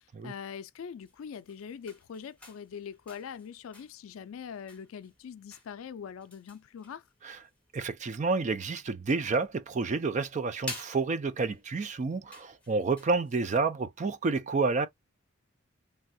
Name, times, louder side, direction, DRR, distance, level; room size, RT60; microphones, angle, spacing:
voice 1, 0.2-7.0, left 7 dB, 75° left, 0.4 m, -42 dB
sound 1, 0.9-13.5, left 2 dB, 5° left, 0.9 m, -50 dB
voice 2, 7.7-14.9, right 4 dB, 35° right, 0.4 m, -29 dB
3.3 x 2.3 x 2.6 m
head